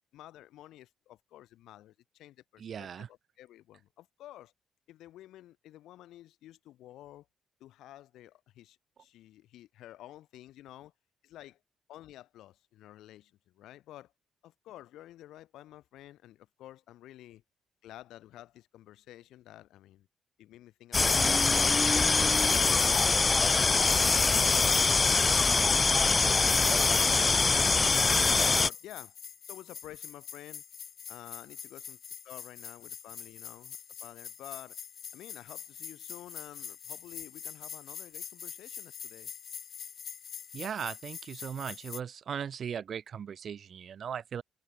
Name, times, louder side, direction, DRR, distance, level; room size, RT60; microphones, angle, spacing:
voice 1, 0.1-4.5 4.9-7.3 7.6-10.9 11.2-11.6 11.9-14.1 14.4-17.4 17.8-20.1 20.4-23.6 27.4-29.2 29.5-30.6 31.1-34.8 35.1-39.3, left 14 dB, 85° left, 6.3 m, -51 dB
voice 2, 2.6-3.1 40.5-44.4, right 8 dB, 55° right, 6.6 m, -38 dB
sound 1, 20.9-28.7, left 4 dB, 30° left, 1.4 m, -24 dB
sound 2, 26.0-42.0, left 8 dB, 55° left, 1.6 m, -45 dB
cardioid pair, 90°, 0 cm